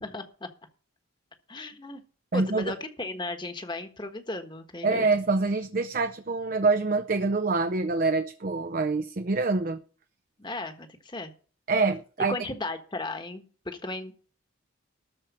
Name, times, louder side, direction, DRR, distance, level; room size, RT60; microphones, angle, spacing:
voice 1, 0.0-0.5 1.5-2.0 2.3-5.1 10.4-11.3 12.3-14.1, left 2 dB, 20° left, 1.3 m, -36 dB
voice 2, 2.3-2.7 4.8-9.8 11.7-12.3, right 3 dB, 40° right, 0.6 m, -25 dB
13.0 x 4.8 x 8.6 m
head